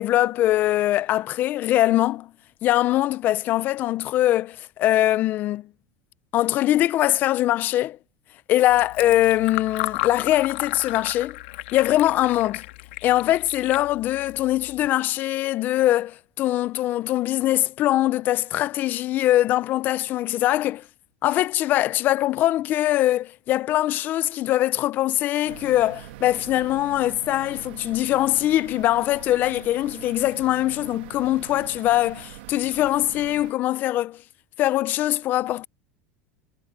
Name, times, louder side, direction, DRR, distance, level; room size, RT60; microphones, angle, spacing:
voice 1, 0.0-2.3 2.6-5.7 6.3-8.0 8.5-11.4 11.7-12.6 13.0-20.8 21.2-34.2 34.6-35.7, left 14 dB, 30° left, 0.5 m, -22 dB
Fill (with liquid), 8.7-14.9, left 19 dB, 75° left, 1.8 m, -34 dB
sound 1, 25.5-33.5, right 16 dB, 75° right, 1.3 m, -43 dB
supercardioid pair, 165°, 6 cm